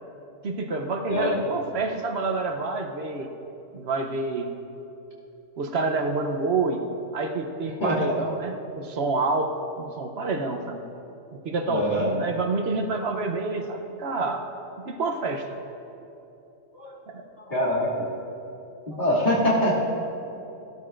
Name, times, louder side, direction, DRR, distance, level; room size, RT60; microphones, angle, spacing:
voice 1, 0.4-3.3 3.7-4.5 5.6-6.8 7.1-9.5 9.8-10.8 11.4-14.4 14.8-15.5 17.1-17.2, right 3 dB, 60° right, 4 dB, 1.0 m, -28 dB
voice 2, 1.1-1.4 7.8-8.1 11.7-12.1 16.8-16.9 17.4-18.1 18.9-19.7, left 1 dB, 40° left, -8 dB, 2.6 m, -24 dB
15.0 x 13.0 x 2.5 m, 2.9 s
omnidirectional pair, 1.3 m